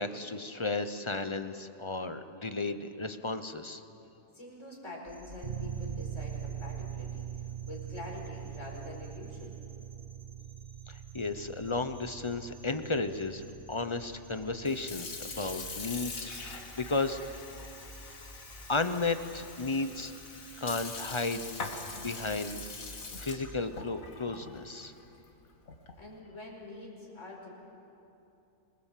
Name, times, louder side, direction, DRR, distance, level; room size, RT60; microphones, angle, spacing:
voice 1, 0.0-3.8 10.9-17.2 18.7-20.1 20.6-21.4 21.9-24.9, left 3 dB, 25° left, 9 dB, 0.7 m, -34 dB
voice 2, 4.3-9.6 26.0-27.5, left 2 dB, 60° left, -2 dB, 5.4 m, -45 dB
sound 1, 5.1-23.6, right 1 dB, 15° right, 1.5 m, -53 dB
sound 2, 5.4-22.2, right 10 dB, 50° right, 1.0 m, -44 dB
Sink (filling or washing) / Fill (with liquid), 14.5-26.1, left 4 dB, 85° left, 2.2 m, -43 dB
26.5 x 21.0 x 7.5 m, 2.8 s
omnidirectional pair, 1.4 m